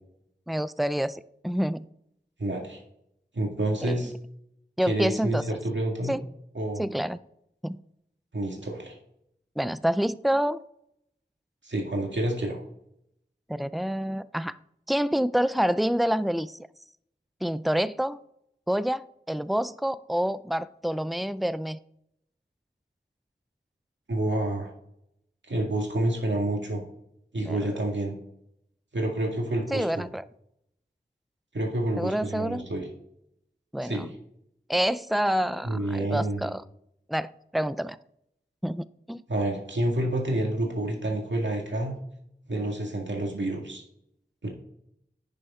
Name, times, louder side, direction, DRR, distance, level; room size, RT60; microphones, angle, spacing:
voice 1, 0.5-1.9 3.8-4.1 4.8-5.4 6.1-6.2 6.8-7.2 7.6-7.8 9.6-10.6 13.5-14.6 14.9-16.6 17.4-18.2 18.7-21.8 27.4-27.7 29.7-30.2 32.0-32.7 33.7-34.1 34.7-36.6 37.1-38.0 38.6-39.2, equal, ahead, 16 dB, 0.3 m, -27 dB
voice 2, 2.4-2.8 3.3-4.1 4.9-6.2 6.5-6.9 8.3-9.0 11.6-12.6 24.1-24.7 25.5-26.8 27.3-28.1 28.9-30.0 31.5-32.8 33.8-34.1 35.6-36.5 39.3-42.0 42.5-43.8 44.4-44.5, right 1 dB, 85° right, 0 dB, 2.0 m, -28 dB
10.5 x 6.6 x 3.7 m, 0.76 s
wide cardioid pair, 55°, 18 cm